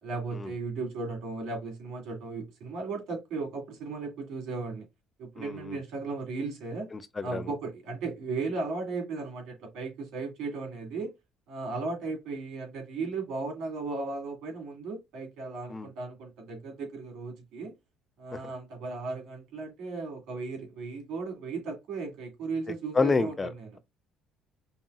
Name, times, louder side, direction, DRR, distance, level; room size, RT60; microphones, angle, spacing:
voice 1, 0.0-4.9 5.2-6.9 7.2-11.1 11.5-17.7 18.2-23.8, right 3 dB, 70° right, 2.4 m, -36 dB
voice 2, 5.4-5.8 6.9-7.4 15.7-15.9 18.3-18.4 22.9-23.5, left 4 dB, 15° left, 0.4 m, -28 dB
5.5 x 2.7 x 2.4 m
cardioid pair, 160°, 0 cm